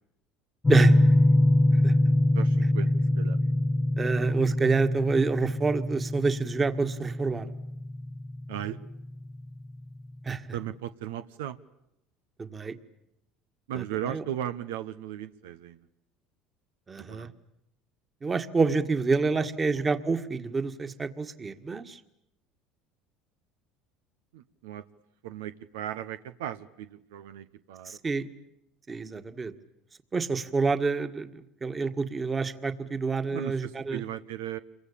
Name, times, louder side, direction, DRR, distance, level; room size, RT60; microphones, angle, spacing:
sound 1, 0.6-9.4, left 1 dB, 15° left, 1.4 m, -24 dB
voice 1, 2.3-3.4 8.5-8.8 10.5-11.6 13.7-15.9 17.0-17.3 19.3-19.5 19.7-19.8 24.3-24.8 25.2-28.0 33.3-34.6, right 11 dB, 90° right, 11 dB, 1.0 m, -37 dB
voice 2, 4.0-7.5 10.2-10.4 12.4-12.8 13.7-14.2 16.9-17.3 18.2-22.0 27.9-28.3 28.9-29.5 30.1-34.0, right 4 dB, 25° right, 9 dB, 1.8 m, -28 dB
28.0 x 23.5 x 8.6 m, 0.83 s
supercardioid pair, 105°, 0 cm